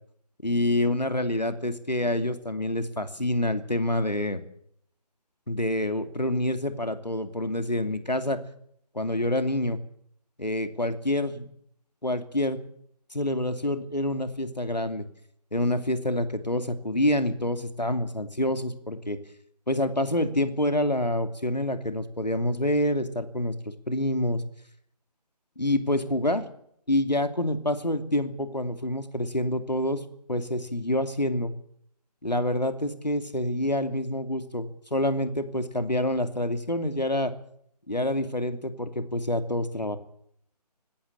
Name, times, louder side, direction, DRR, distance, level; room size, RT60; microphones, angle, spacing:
voice 1, 0.4-4.4 5.5-8.4 8.9-9.8 10.4-11.5 12.0-12.6 13.1-15.1 15.5-19.2 19.7-23.5 23.9-24.4 25.6-26.4 26.9-30.0 30.3-31.5 32.2-37.3 37.9-40.0, left 1 dB, 90° left, 9 dB, 2.7 m, -27 dB
19.5 x 16.5 x 8.7 m, 0.68 s
figure-of-eight pair, 155°, 21 cm